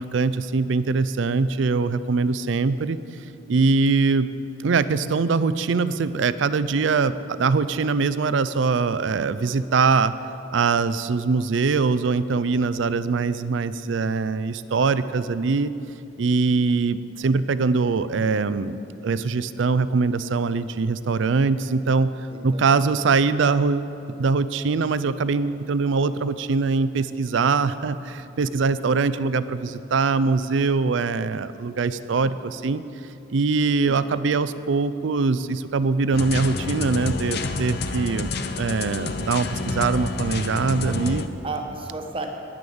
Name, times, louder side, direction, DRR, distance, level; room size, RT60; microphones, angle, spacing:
voice 1, 0.0-3.0 3.5-4.3 4.6-10.1 10.5-15.7 16.2-18.7 19.0-22.1 22.4-23.9 24.2-32.8 33.3-38.3 38.6-41.3, right 4 dB, 70° right, 14 dB, 0.5 m, -22 dB
voice 2, 22.3-22.9 33.8-34.2 40.8-40.9 41.4-42.3, right 3 dB, 30° right, 3 dB, 1.1 m, -34 dB
sound 1, 36.1-41.3, left 3 dB, 55° left, 0.7 m, -29 dB
10.0 x 9.7 x 7.1 m, 2.8 s
head